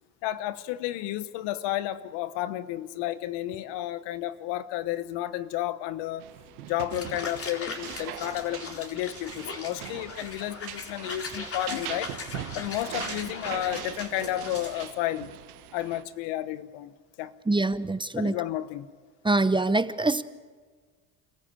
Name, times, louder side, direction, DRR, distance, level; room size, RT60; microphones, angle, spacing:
voice 1, 0.2-6.3 6.7-12.1 12.5-15.3 15.7-17.3 18.2-18.9, left 14 dB, 70° left, 15 dB, 1.1 m, -32 dB
sound 1, 6.2-16.0, right 12 dB, 85° right, 1.4 m, -41 dB
sound 2, 6.9-14.9, left 3 dB, 30° left, 4.0 m, -39 dB
voice 2, 17.5-18.4 19.2-20.2, right 2 dB, 10° right, 15 dB, 0.8 m, -24 dB
27.5 x 14.5 x 8.5 m, 1.5 s
hypercardioid pair, 70°, 43 cm